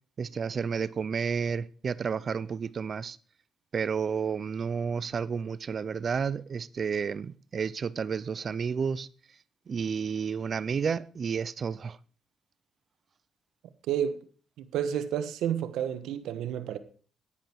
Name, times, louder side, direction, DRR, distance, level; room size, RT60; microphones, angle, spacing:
voice 1, 0.2-3.2 3.7-9.1 9.7-12.0, right 6 dB, 45° right, 0.5 m, -31 dB
voice 2, 13.9-14.2 14.6-16.8, right 9 dB, 85° right, 1.2 m, -30 dB
10.5 x 10.0 x 4.5 m
cardioid pair, 90°, 0 cm